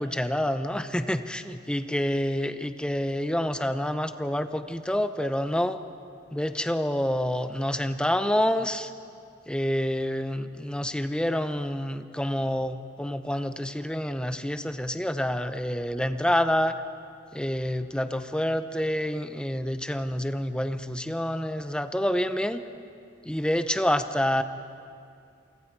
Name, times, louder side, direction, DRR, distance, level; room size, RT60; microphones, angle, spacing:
voice 1, 0.0-5.8 6.3-8.9 9.5-16.8 17.3-22.6 23.2-24.4, equal, 5° left, 9 dB, 0.7 m, -27 dB
28.0 x 24.5 x 4.7 m, 2.4 s
head